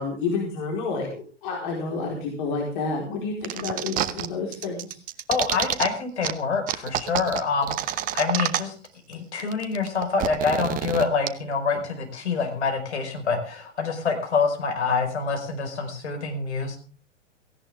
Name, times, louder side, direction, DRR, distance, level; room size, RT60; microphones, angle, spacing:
voice 1, 0.0-5.0, left 4 dB, 45° left, 0 dB, 4.4 m, -29 dB
sound 1, 3.4-4.3 4.5-5.9 6.2-6.3 6.7-8.9 9.1-9.2 9.4-11.3, right 12 dB, 20° right, 0.9 m, -28 dB
voice 2, 5.3-8.7 9.1-16.8, left 5 dB, 65° left, 5 dB, 5.1 m, -26 dB
17.5 x 16.0 x 3.6 m, 0.36 s
figure-of-eight pair, 105°, 37 cm